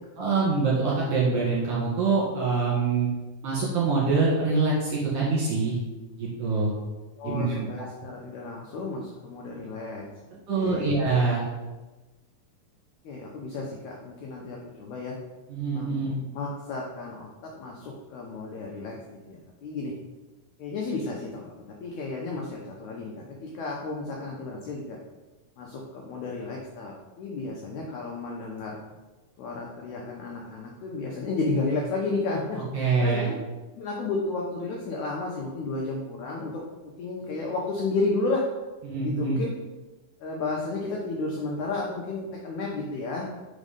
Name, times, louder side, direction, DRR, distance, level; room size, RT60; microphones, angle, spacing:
voice 1, 0.2-3.1 3.4-5.8 6.2-6.7 7.2-7.7 10.5-11.4 15.5-16.2 32.7-33.3 38.8-39.4, right 4 dB, 55° right, -6 dB, 2.1 m, -25 dB
voice 2, 7.2-10.0 10.5-11.0 13.0-15.2 15.7-19.9 20.6-25.0 25.6-28.8 29.4-32.6 33.0-33.3 33.8-36.6 37.0-38.4 38.9-39.5 40.2-43.3, left 3 dB, 90° left, -1 dB, 1.6 m, -32 dB
5.1 x 4.2 x 5.1 m, 1.2 s
omnidirectional pair, 4.3 m